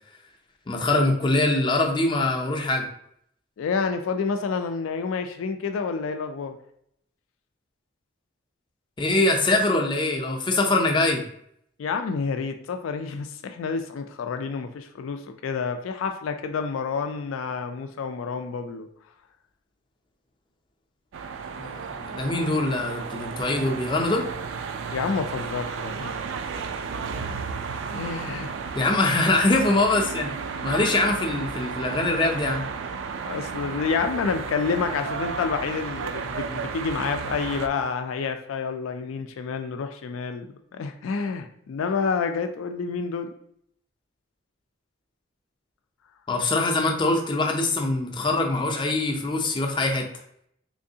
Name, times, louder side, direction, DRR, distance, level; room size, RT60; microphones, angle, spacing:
voice 1, 0.7-2.9 9.0-11.2 21.6-24.3 28.7-30.3 30.6-32.6 46.3-50.1, left 2 dB, 25° left, 2 dB, 0.4 m, -23 dB
voice 2, 3.6-6.6 11.8-18.9 24.9-26.1 27.9-28.5 33.2-43.3, left 5 dB, 90° left, 7 dB, 0.3 m, -29 dB
sound 1, 21.1-37.7, right 5 dB, 75° right, 0.3 m, -33 dB
3.6 x 3.1 x 2.7 m, 0.69 s
head